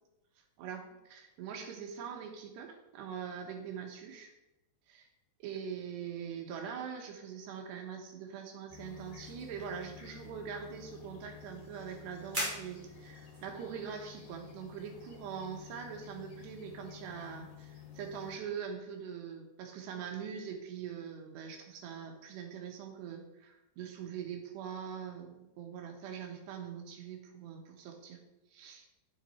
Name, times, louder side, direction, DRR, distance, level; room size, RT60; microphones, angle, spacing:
voice 1, 0.6-4.3 4.9-5.1 5.4-28.2 28.5-28.9, right 7 dB, 80° right, 4 dB, 3.4 m, -43 dB
sound 1, 8.7-18.4, left 8 dB, 65° left, 3.4 m, -52 dB
sound 2, 8.8-17.3, equal, 15° right, 2.5 m, -47 dB
9.1 x 7.5 x 4.4 m, 0.97 s
omnidirectional pair, 4.9 m